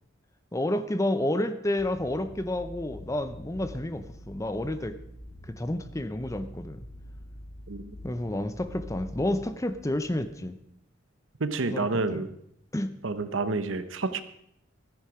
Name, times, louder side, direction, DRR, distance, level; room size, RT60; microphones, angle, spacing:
voice 1, 0.5-5.0 5.5-6.9 8.0-10.6 11.7-12.2 12.7-12.9, left 1 dB, 15° left, 11 dB, 0.6 m, -30 dB
sound 1, 1.8-10.3, equal, 60° left, 3.0 m, -46 dB
voice 2, 11.4-12.3 13.0-14.2, right 3 dB, 75° right, 11 dB, 0.9 m, -29 dB
14.0 x 10.0 x 4.9 m, 0.74 s
head